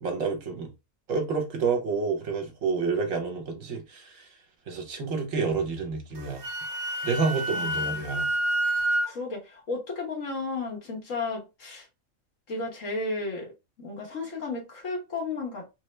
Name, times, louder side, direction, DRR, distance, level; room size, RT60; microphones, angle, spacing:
voice 1, 0.0-0.7 1.1-4.3 4.7-6.4 7.0-8.3, right 4 dB, 65° right, 1.3 m, -29 dB
Wind instrument woodwind instrument, 6.2-9.1, right 1 dB, 50° right, 0.6 m, -28 dB
voice 2, 7.5-8.1 9.1-11.9 12.5-13.5 13.8-15.7, left 3 dB, 65° left, 1.5 m, -33 dB
3.3 x 2.0 x 3.2 m
omnidirectional pair, 1.5 m